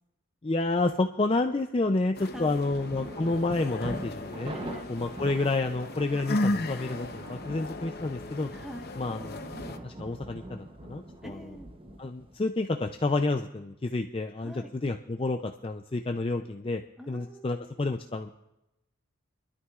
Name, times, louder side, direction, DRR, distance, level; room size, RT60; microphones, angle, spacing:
voice 1, 0.4-4.5 4.9-8.5 9.0-9.4 9.8-11.4 12.0-16.8 17.1-18.3, left 2 dB, 25° left, 5 dB, 0.4 m, -29 dB
sound 1, 2.1-9.8, left 2 dB, 45° left, 0.8 m, -35 dB
voice 2, 2.2-2.7 4.5-4.9 8.5-8.9 11.2-11.7 14.4-14.7 17.0-17.8, equal, ahead, 2 dB, 1.3 m, -44 dB
sound 2, 2.7-12.4, right 1 dB, 25° right, 0.8 m, -43 dB
24.5 x 12.5 x 2.4 m, 0.88 s
head